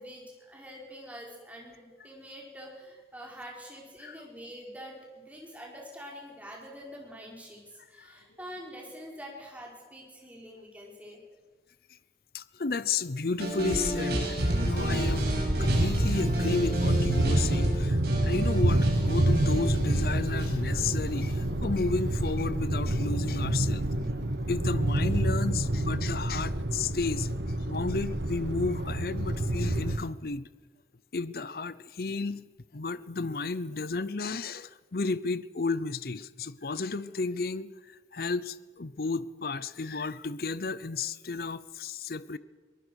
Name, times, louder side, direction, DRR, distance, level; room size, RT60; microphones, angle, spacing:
voice 1, 0.0-11.2, equal, 10° right, -1 dB, 5.1 m, -45 dB
voice 2, 12.3-23.9 24.5-27.3 27.7-30.5 31.1-32.4 32.7-42.4, left 4 dB, 55° left, 16 dB, 0.7 m, -32 dB
sound 1, 13.4-21.5, equal, 60° right, 6.2 m, -32 dB
sound 2, 14.4-30.0, right 1 dB, 80° right, 1.5 m, -28 dB
23.5 x 19.0 x 6.4 m, 1.4 s
head